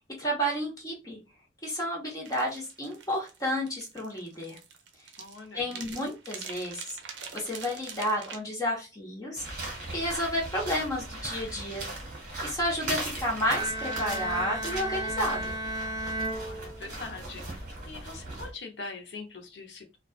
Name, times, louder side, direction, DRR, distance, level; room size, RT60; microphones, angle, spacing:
voice 1, 0.2-1.2 1.6-4.6 5.5-7.0 7.3-9.4 9.9-11.9 12.4-15.5, equal, 20° left, -2 dB, 0.9 m, -31 dB
sound 1, 2.2-8.4, right 6 dB, 80° right, 0.5 m, -44 dB
voice 2, 5.2-6.2 16.3-20.0, left 3 dB, 75° left, 4 dB, 0.6 m, -43 dB
sound 2, 9.4-18.5, right 2 dB, 50° right, 1.0 m, -38 dB
Bowed string instrument, 13.5-17.2, right 1 dB, 20° right, 0.4 m, -34 dB
2.3 x 2.3 x 2.3 m, 0.28 s
head